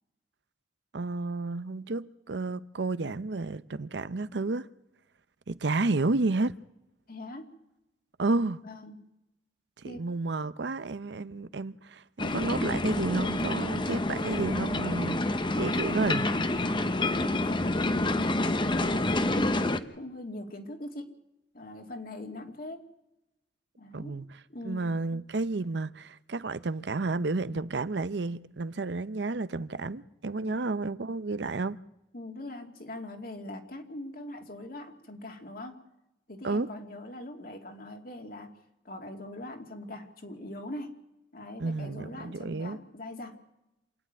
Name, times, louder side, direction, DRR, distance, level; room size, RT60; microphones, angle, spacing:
voice 1, 0.9-4.7 5.5-6.5 8.2-8.6 9.8-16.3 23.9-24.4 24.6-31.8 36.4-36.7 41.6-42.8, right 3 dB, 75° right, 0.7 m, -31 dB
voice 2, 7.1-7.5 8.6-9.0 9.8-10.0 16.9-19.6 19.9-21.1 21.5-22.8 23.8-24.1 24.5-24.9 30.4-30.6 32.1-35.8 36.3-38.5 38.8-40.9 41.3-43.4, left 1 dB, 55° left, 2.6 m, -41 dB
sound 1, 12.2-19.8, left 2 dB, 25° left, 0.9 m, -28 dB
27.0 x 10.0 x 9.6 m
head